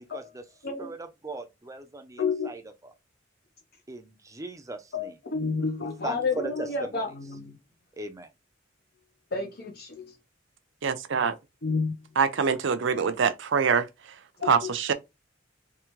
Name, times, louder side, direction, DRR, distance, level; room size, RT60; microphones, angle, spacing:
voice 1, 0.8-2.9 3.9-5.2 5.8-7.0 8.0-8.3, right 2 dB, 15° right, 0.6 m, -39 dB
voice 2, 2.2-2.5 4.9-7.6 9.3-10.1 11.6-11.9 14.4-14.5, left 4 dB, 55° left, 1.0 m, -30 dB
voice 3, 10.8-11.4 12.2-13.9 14.5-14.9, right 6 dB, 70° right, 0.6 m, -24 dB
3.5 x 3.2 x 3.1 m
head